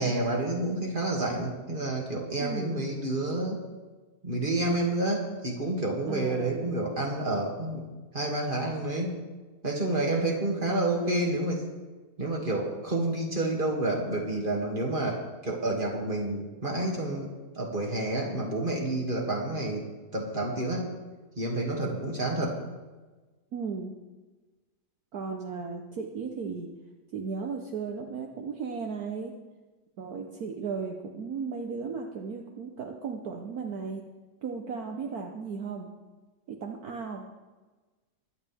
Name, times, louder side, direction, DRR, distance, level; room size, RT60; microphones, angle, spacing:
voice 1, 0.0-3.6 4.2-7.9 8.1-9.1 9.6-11.6 12.2-19.9 20.1-20.9 21.4-22.6, right 2 dB, 30° right, -1 dB, 2.6 m, -29 dB
voice 2, 2.4-2.8 6.1-6.7 23.5-23.9 25.1-26.7 27.1-29.3 30.0-34.0 34.4-35.9 36.5-37.2, right 5 dB, 65° right, 2 dB, 1.5 m, -35 dB
22.5 x 10.5 x 3.6 m, 1.2 s
omnidirectional pair, 1.8 m